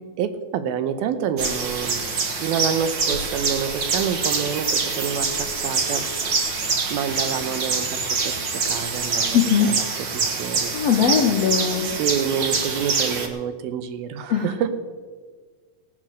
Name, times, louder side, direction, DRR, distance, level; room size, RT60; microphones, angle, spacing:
voice 1, 0.2-2.0 2.4-6.1 6.9-9.9 10.1-10.7 11.9-14.7, right 8 dB, 85° right, 10 dB, 2.7 m, -27 dB
sound 1, 1.4-13.3, right 4 dB, 70° right, 1.0 m, -25 dB
voice 2, 9.3-9.7 10.7-11.9 14.3-14.5, left 8 dB, 65° left, 1 dB, 1.6 m, -20 dB
18.0 x 7.8 x 6.4 m, 1.5 s
omnidirectional pair, 4.2 m